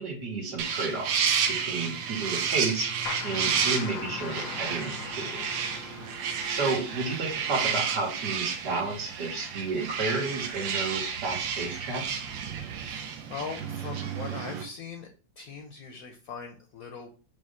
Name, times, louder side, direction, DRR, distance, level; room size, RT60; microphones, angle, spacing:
voice 1, 0.0-2.9 3.2-5.4 6.5-12.2, right 3 dB, 65° right, 0 dB, 2.5 m, -32 dB
sound 1, 0.6-14.6, right 7 dB, 85° right, 1.6 m, -31 dB
sound 2, 3.1-8.5, left 9 dB, 85° left, 1.4 m, -41 dB
voice 2, 5.7-6.1 12.8-15.1 15.4-17.1, left 5 dB, 60° left, 5 dB, 1.1 m, -41 dB
5.1 x 3.5 x 5.6 m, 0.36 s
omnidirectional pair, 2.0 m